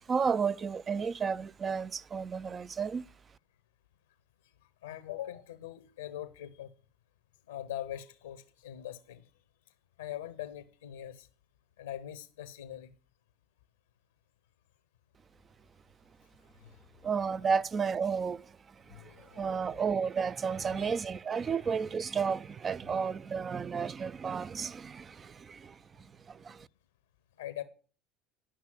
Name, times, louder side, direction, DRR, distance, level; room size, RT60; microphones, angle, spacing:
voice 1, 0.1-3.1 17.0-26.7, right 6 dB, 35° right, 0.4 m, -32 dB
voice 2, 4.8-6.7 7.5-9.2 10.0-11.3 11.8-12.9 16.6-16.8 17.5-17.6 18.9-19.8 20.8-20.9 27.4-27.6, left 12 dB, 85° left, 0.7 m, -42 dB
11.0 x 5.7 x 6.1 m
hypercardioid pair, 70°, 0 cm